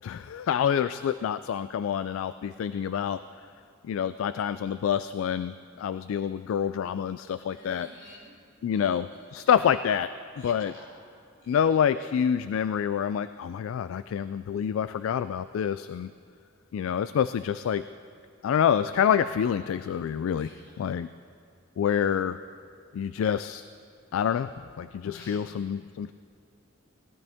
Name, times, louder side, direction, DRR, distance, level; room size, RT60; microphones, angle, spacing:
voice 1, 0.0-3.2 3.8-7.9 8.6-10.1 10.4-10.7 11.5-16.1 16.7-17.8 18.4-20.5 20.8-21.1 21.8-22.4 22.9-23.6 24.1-24.5 24.8-26.1, left 8 dB, 85° left, 13 dB, 0.3 m, -27 dB
voice 2, 7.5-8.3 8.7-9.4 10.4-11.1 11.4-11.7 20.4-21.0 25.1-25.4, left 1 dB, 70° left, -5 dB, 3.4 m, -51 dB
18.0 x 13.0 x 3.5 m, 2.3 s
head